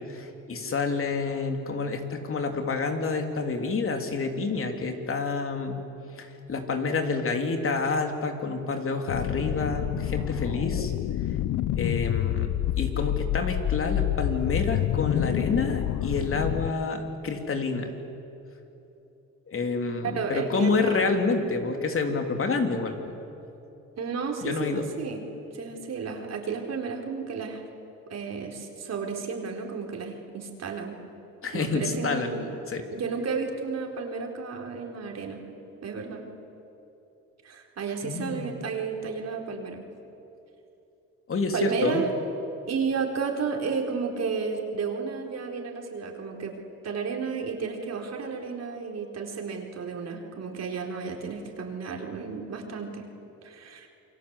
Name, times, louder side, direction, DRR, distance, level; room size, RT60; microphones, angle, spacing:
voice 1, 0.1-5.8 6.1-10.9 11.8-17.9 19.5-23.1 24.4-24.9 31.4-32.3 32.7-32.8 38.0-38.5 41.3-42.0, left 4 dB, 45° left, 4 dB, 3.4 m, -28 dB
sound 1, 9.1-16.7, left 13 dB, 75° left, 0.8 m, -28 dB
voice 2, 20.0-21.1 24.0-25.2 25.5-27.6 28.1-31.0 31.5-32.5 32.9-35.4 35.8-36.2 37.4-39.8 41.5-42.1 42.7-46.6 46.8-53.1 53.4-53.9, right 5 dB, 60° right, 2 dB, 4.3 m, -32 dB
28.5 x 23.5 x 8.3 m, 3.0 s
cardioid pair, 90°, 30 cm